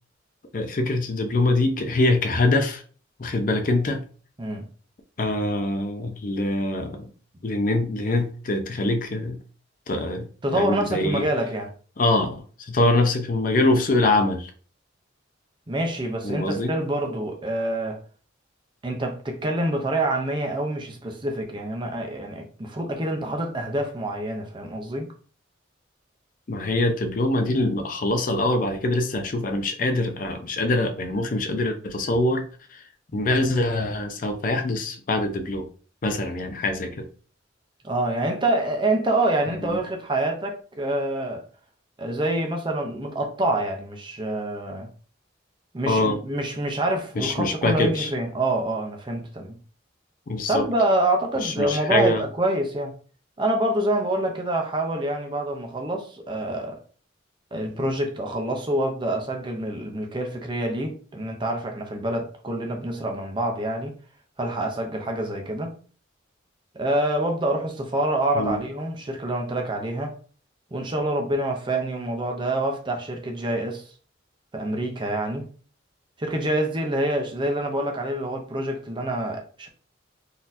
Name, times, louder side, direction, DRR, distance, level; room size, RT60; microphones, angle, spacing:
voice 1, 0.5-2.8 3.2-4.0 5.2-7.1 7.4-9.4 9.9-11.2 12.0-14.5 16.2-16.7 26.5-32.8 33.1-35.7 36.0-37.1 39.6-39.8 45.9-46.2 47.2-48.1 50.3-50.7 51.4-52.2 68.3-68.6, left 2 dB, 45° left, 0.5 m, -24 dB
voice 2, 10.4-11.7 15.7-18.0 18.8-25.1 37.8-41.4 42.0-44.9 45.7-49.6 50.5-52.9 53.4-56.8 57.5-63.9 64.4-65.8 66.7-70.2 70.7-73.8 74.5-75.4 76.2-79.7, right 1 dB, 25° right, 0.6 m, -26 dB
4.0 x 2.8 x 2.6 m
head